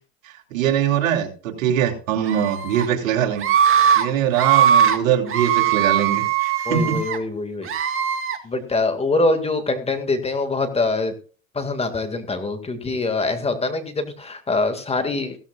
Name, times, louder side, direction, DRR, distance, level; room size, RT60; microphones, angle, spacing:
voice 1, 0.2-3.5 4.0-7.0, right 9 dB, 75° right, 3 dB, 3.0 m, -22 dB
Screaming, 2.3-2.8 3.4-4.0 4.3-5.0 5.3-7.2 7.6-8.4, right 9 dB, 30° right, 2.1 m, -19 dB
voice 2, 6.7-7.7 8.4-11.1 11.5-15.4, left 3 dB, 15° left, 7 dB, 2.0 m, -24 dB
16.5 x 13.5 x 2.4 m, 0.39 s
hypercardioid pair, 110°, 40 cm